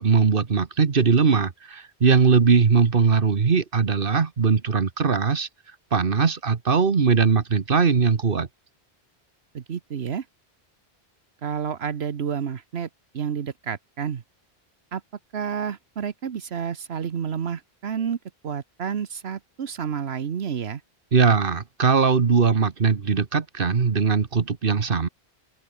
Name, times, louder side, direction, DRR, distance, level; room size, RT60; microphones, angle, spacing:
voice 1, 0.0-5.5 5.9-8.5 21.1-25.1, right 5 dB, 60° right, 1.4 m, -20 dB
voice 2, 9.5-10.2 11.4-12.9 13.1-14.2 14.9-15.0 15.3-18.2 18.4-20.8, right 7 dB, 80° right, 1.3 m, -30 dB
open air
omnidirectional pair, 1.1 m